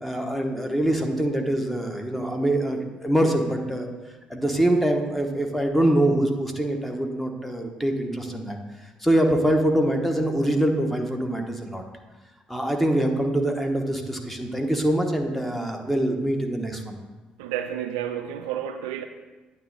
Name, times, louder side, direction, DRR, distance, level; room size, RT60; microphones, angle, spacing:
voice 1, 0.0-3.9 4.3-8.6 9.0-11.8 12.5-17.0, right 1 dB, 5° left, 3 dB, 1.1 m, -24 dB
voice 2, 17.4-19.0, right 10 dB, 70° right, 7 dB, 0.4 m, -30 dB
9.2 x 3.2 x 6.5 m, 1.2 s
figure-of-eight pair, 45°, 4 cm